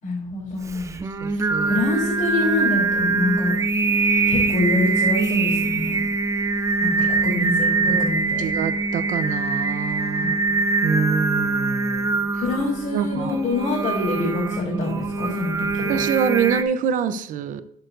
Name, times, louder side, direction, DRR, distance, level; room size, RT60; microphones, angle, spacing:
voice 1, 0.0-0.9 1.7-3.5 4.3-6.1 6.8-8.5 10.2-10.3 12.4-16.0, left 2 dB, 55° left, -6 dB, 3.4 m, -26 dB
Singing, 0.7-16.6, right 3 dB, 20° right, 0.6 m, -23 dB
voice 2, 1.2-1.8 7.8-8.0 8.4-12.4 12.9-13.3 15.9-17.6, right 7 dB, 60° right, 12 dB, 0.7 m, -26 dB
12.5 x 6.7 x 2.6 m, 0.72 s
cardioid pair, 140°, 15 cm